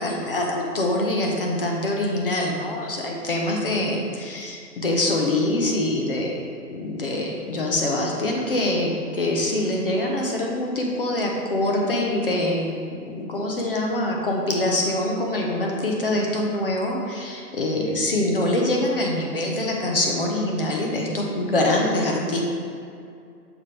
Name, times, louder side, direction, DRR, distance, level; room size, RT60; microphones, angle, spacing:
voice 1, 0.0-6.3 6.7-12.7 13.0-22.4, left 1 dB, 35° left, -1 dB, 0.6 m, -24 dB
6.8 x 3.4 x 4.2 m, 2.3 s
hypercardioid pair, 165°, 49 cm